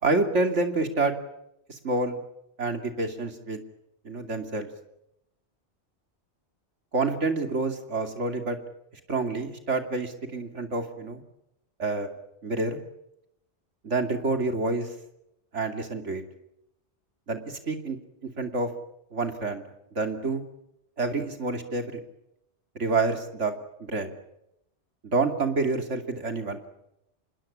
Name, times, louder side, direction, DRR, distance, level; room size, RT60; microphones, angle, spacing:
voice 1, 0.0-1.1 1.7-2.2 2.6-3.6 4.0-4.7 6.9-8.6 9.1-11.2 11.8-12.1 12.4-12.8 13.8-14.9 15.5-16.2 17.3-18.0 18.4-18.7 19.1-19.6 19.9-20.4 21.0-22.0 22.7-23.5 23.9-24.2 25.0-26.6, right 3 dB, 85° right, 6 dB, 3.1 m, -28 dB
26.5 x 20.0 x 10.0 m, 0.83 s
omnidirectional pair, 1.2 m